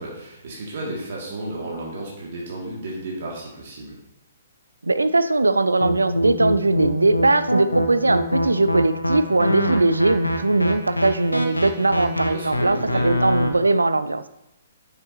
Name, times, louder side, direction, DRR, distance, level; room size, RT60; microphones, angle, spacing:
voice 1, 0.0-4.0 12.3-13.1, right 2 dB, 50° right, -4 dB, 2.6 m, -33 dB
voice 2, 4.8-14.3, right 2 dB, 80° right, 13 dB, 0.5 m, -20 dB
sound 1, 5.8-13.5, equal, 85° left, 0.9 m, -24 dB
9.6 x 6.6 x 3.0 m, 0.84 s
figure-of-eight pair, 125°, 0 cm